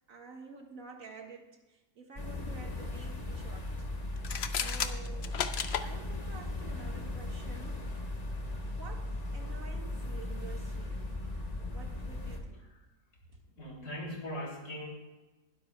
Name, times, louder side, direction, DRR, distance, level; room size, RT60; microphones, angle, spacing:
voice 1, 0.1-3.9 4.6-5.5 5.8-7.9 8.8-11.2 11.6-12.8, right 4 dB, 55° right, 1 dB, 2.0 m, -50 dB
sound 1, 2.2-12.4, left 2 dB, 25° left, 1.4 m, -37 dB
sound 2, 4.2-5.9, left 7 dB, 55° left, 0.8 m, -33 dB
voice 2, 13.5-14.9, equal, 70° left, -2 dB, 3.5 m, -41 dB
20.0 x 12.5 x 2.3 m, 1.1 s
omnidirectional pair, 1.7 m